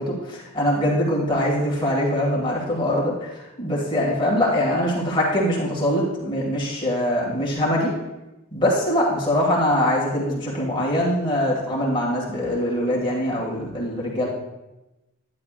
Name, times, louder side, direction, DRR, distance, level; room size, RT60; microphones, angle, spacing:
voice 1, 0.0-3.3 3.6-7.9 8.5-14.3, left 1 dB, 25° left, -4 dB, 2.1 m, -23 dB
11.0 x 10.5 x 2.5 m, 0.99 s
head